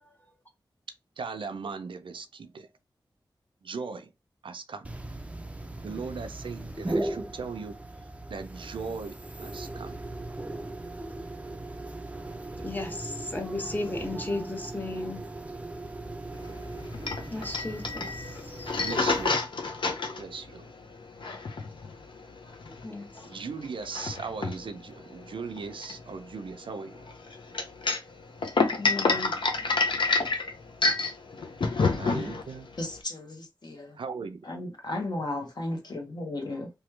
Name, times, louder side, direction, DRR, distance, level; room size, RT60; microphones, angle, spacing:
voice 1, 1.2-2.7 3.6-4.1 4.4-4.9 5.8-7.8 8.3-10.0 18.7-19.3 20.2-20.7 23.2-27.1 32.0-32.7 33.9-34.4, right 5 dB, 80° right, 0.4 m, -38 dB
sound 1, 4.8-19.3, right 2 dB, 15° right, 0.4 m, -38 dB
voice 2, 12.6-15.2 17.3-18.8 20.1-20.3 22.8-23.3 28.8-29.4, left 2 dB, 20° left, 0.8 m, -35 dB
sound 2, 16.4-33.0, left 3 dB, 75° left, 0.6 m, -29 dB
voice 3, 32.8-34.0 34.5-36.7, left 2 dB, 55° left, 0.9 m, -34 dB
3.0 x 2.3 x 3.1 m
wide cardioid pair, 80°, 8 cm